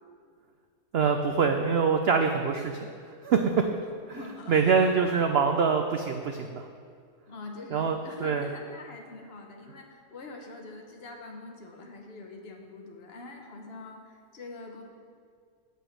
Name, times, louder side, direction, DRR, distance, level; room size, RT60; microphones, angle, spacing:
voice 1, 0.9-2.9 3.2-3.6 4.1-4.2 4.5-6.7 7.7-8.5, right 5 dB, 75° right, 5 dB, 0.5 m, -24 dB
voice 2, 4.1-5.1 7.3-14.8, left 3 dB, 40° left, 1 dB, 1.3 m, -44 dB
8.1 x 5.5 x 7.7 m, 2.1 s
omnidirectional pair, 1.7 m